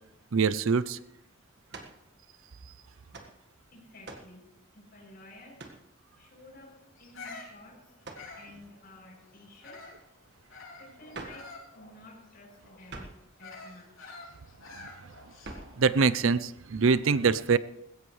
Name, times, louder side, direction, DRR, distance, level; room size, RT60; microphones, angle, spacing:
voice 1, 0.3-1.0 14.7-14.9 15.8-17.6, right 5 dB, 75° right, 16 dB, 0.6 m, -24 dB
sound 1, 1.7-2.0 3.1-3.4 4.0-4.4 5.6-5.9 8.0-8.3 11.1-11.5 12.9-13.3 15.4-15.8, right 3 dB, 55° right, 1.6 m, -44 dB
voice 2, 3.7-4.5 4.7-5.6 6.1-7.9 8.3-9.9 10.8-14.2, left 1 dB, 45° left, -2 dB, 7.6 m, -52 dB
Bird vocalization bird call bird song, 6.9-10.1 10.5-15.8, left 3 dB, 90° left, 7.0 m, -48 dB
20.0 x 16.5 x 3.2 m, 0.83 s
head